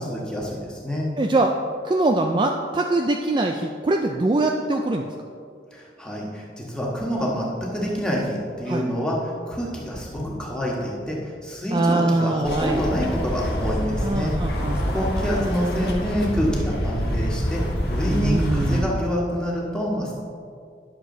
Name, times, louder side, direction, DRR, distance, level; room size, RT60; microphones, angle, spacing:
voice 1, 0.0-1.1 5.7-14.3 14.7-17.6 17.9-20.1, equal, 5° left, -4 dB, 1.4 m, -27 dB
voice 2, 1.2-5.1 8.7-8.8 11.7-12.8 14.0-14.8 15.0-15.1 18.1-19.0, right 2 dB, 25° right, 2 dB, 0.3 m, -23 dB
sound 1, 12.4-18.8, equal, 60° left, 1.3 m, -26 dB
10.5 x 6.6 x 3.9 m, 2.3 s
head